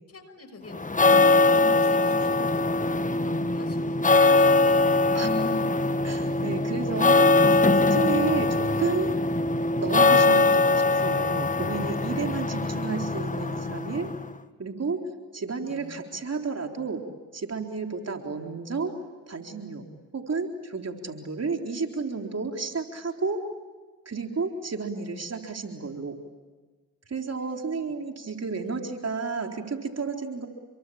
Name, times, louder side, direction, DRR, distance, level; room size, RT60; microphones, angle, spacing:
voice 1, 0.1-5.2 13.2-13.3 15.7-16.0 27.9-28.0, left 3 dB, 45° left, 9 dB, 6.4 m, -46 dB
sound 1, 0.7-14.3, left 3 dB, 20° left, 1.5 m, -22 dB
voice 2, 6.0-9.2 9.8-14.1 14.6-17.0 17.3-19.0 19.3-19.9 20.1-23.5 24.1-26.2 27.1-30.5, right 4 dB, 45° right, 3 dB, 4.0 m, -32 dB
29.0 x 23.5 x 8.8 m, 1.3 s
supercardioid pair, 50°, 35 cm